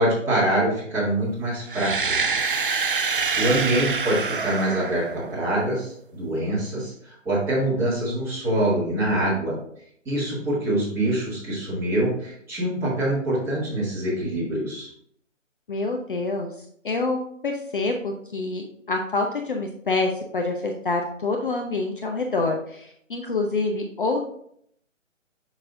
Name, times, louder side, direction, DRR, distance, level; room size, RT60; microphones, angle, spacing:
voice 1, 0.0-2.3 3.4-9.6 10.1-14.9, right 1 dB, 5° right, -10 dB, 2.2 m, -25 dB
sound 1, 1.7-5.6, right 5 dB, 45° right, 0.4 m, -26 dB
voice 2, 15.7-17.2 17.4-24.2, left 3 dB, 40° left, 2 dB, 0.7 m, -27 dB
6.6 x 6.1 x 2.6 m, 0.68 s
figure-of-eight pair, 145°, 39 cm